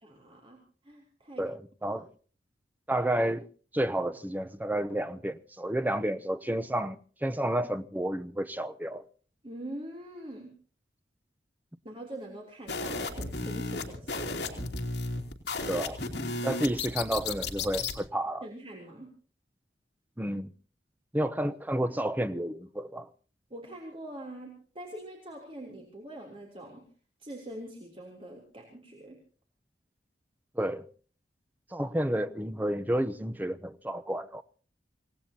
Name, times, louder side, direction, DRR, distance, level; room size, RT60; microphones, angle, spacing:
voice 1, 0.0-1.5 1.9-2.0 9.4-10.5 11.8-14.7 18.4-19.1 23.5-26.9 27.2-29.2, right 1 dB, 30° right, 3.3 m, -44 dB
voice 2, 1.4-2.1 2.9-3.5 3.7-9.0 15.7-16.0 16.4-18.5 20.2-20.5 21.1-23.1 30.6-30.9 31.7-34.4, right 1 dB, 10° right, 0.8 m, -31 dB
sound 1, 12.7-18.0, left 3 dB, 70° left, 2.9 m, -34 dB
26.5 x 18.0 x 2.9 m
head